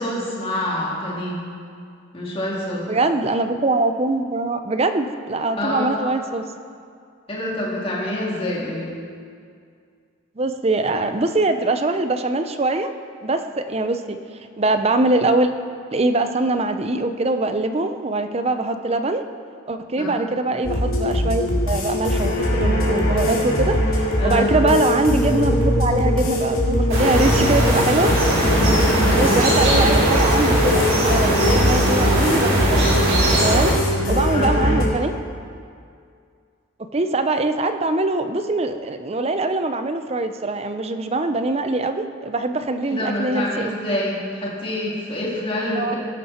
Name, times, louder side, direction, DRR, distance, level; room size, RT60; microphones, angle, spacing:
voice 1, 0.0-1.4 2.1-2.9 5.6-6.0 7.3-8.9 20.0-20.2 24.2-24.5 28.5-29.4 34.3-34.5 42.9-45.9, left 1 dB, 25° left, -5 dB, 3.0 m, -26 dB
voice 2, 2.9-6.4 10.4-12.9 13.2-14.2 14.6-15.5 15.9-19.2 19.7-28.2 29.1-32.8 33.4-33.8 34.1-35.1 36.9-43.7 45.8-46.0, right 2 dB, 30° right, 8 dB, 0.6 m, -23 dB
sound 1, 20.6-34.8, left 1 dB, 90° left, 2.8 m, -21 dB
sound 2, 26.9-33.7, right 1 dB, 70° right, 3.8 m, -20 dB
16.0 x 11.0 x 4.4 m, 2.3 s
head